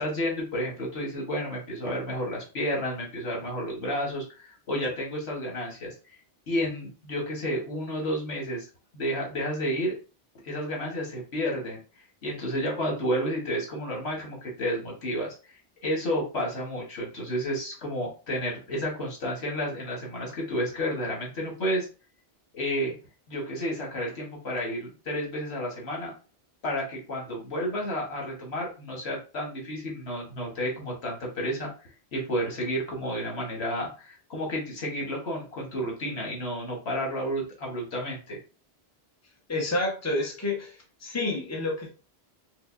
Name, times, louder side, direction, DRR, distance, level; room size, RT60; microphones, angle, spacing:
voice 1, 0.0-5.9 6.5-8.7 8.9-9.9 10.4-11.8 12.2-21.9 22.5-22.9 23.3-26.1 26.6-38.4, equal, 80° left, -1 dB, 1.5 m, -31 dB
voice 2, 39.5-40.7 41.0-41.9, left 2 dB, 15° left, -2 dB, 0.8 m, -29 dB
5.1 x 2.1 x 2.5 m, 0.35 s
omnidirectional pair, 1.1 m